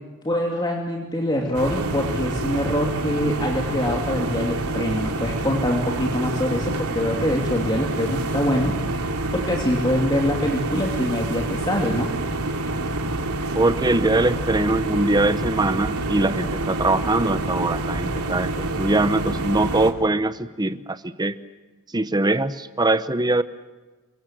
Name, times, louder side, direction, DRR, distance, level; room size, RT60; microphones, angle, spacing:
voice 1, 0.2-8.8 9.3-12.1, left 1 dB, 20° left, 0 dB, 2.6 m, -24 dB
sound 1, 1.5-19.9, right 2 dB, 90° right, 3.0 m, -27 dB
voice 2, 13.5-21.4 21.9-23.4, right 2 dB, 20° right, 13 dB, 0.8 m, -22 dB
29.0 x 24.5 x 7.6 m, 1.2 s
head